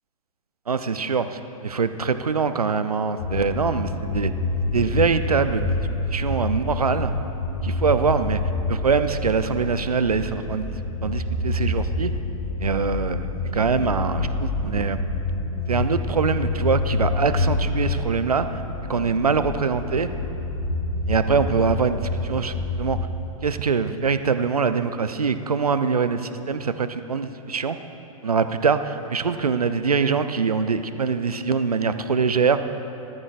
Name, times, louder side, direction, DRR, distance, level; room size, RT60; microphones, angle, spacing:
voice 1, 0.7-4.3 4.7-5.7 6.1-7.1 7.6-8.4 8.7-10.7 11.0-12.1 12.6-15.0 15.7-18.5 18.9-20.1 21.1-23.0 23.4-27.8 28.2-32.6, right 5 dB, 90° right, 10 dB, 0.6 m, -23 dB
sound 1, 3.2-23.1, left 2 dB, 70° left, 2.3 m, -27 dB
17.5 x 13.5 x 2.5 m, 3.0 s
figure-of-eight pair, 105°, 19 cm